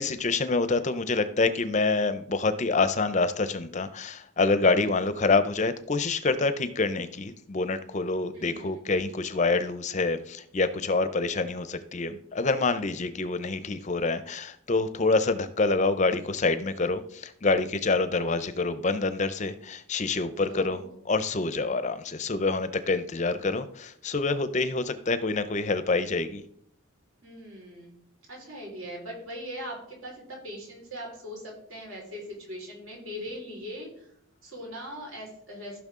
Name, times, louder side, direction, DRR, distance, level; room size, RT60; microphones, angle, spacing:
voice 1, 0.0-20.8 21.1-26.4, left 3 dB, 35° left, 12 dB, 0.5 m, -26 dB
voice 2, 4.8-5.1 8.3-8.8 20.5-21.0 27.2-28.0 28.3-34.1 34.4-35.8, equal, 75° right, -2 dB, 4.4 m, -40 dB
14.5 x 6.0 x 3.7 m, 0.68 s
head